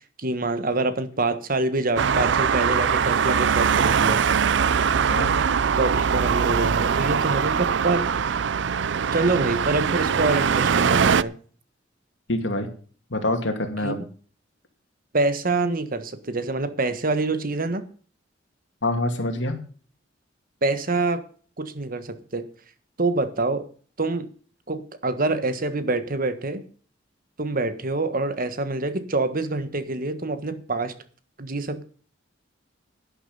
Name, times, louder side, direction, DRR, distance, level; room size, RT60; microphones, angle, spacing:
voice 1, 0.2-4.2 5.8-8.1 9.1-11.3 13.8-13.9 15.1-17.8 20.6-21.2 21.6-22.5 23.0-23.7 24.0-24.3 24.7-26.6 27.4-30.9 31.4-31.8, right 2 dB, 50° right, 11 dB, 1.4 m, -26 dB
Traffic noise roadway noise, 2.0-11.2, right 6 dB, 70° right, 0.5 m, -22 dB
voice 2, 12.3-12.7 13.1-14.0 18.8-19.5, left 1 dB, 75° left, 6 dB, 2.6 m, -25 dB
11.5 x 10.0 x 5.5 m, 0.42 s
head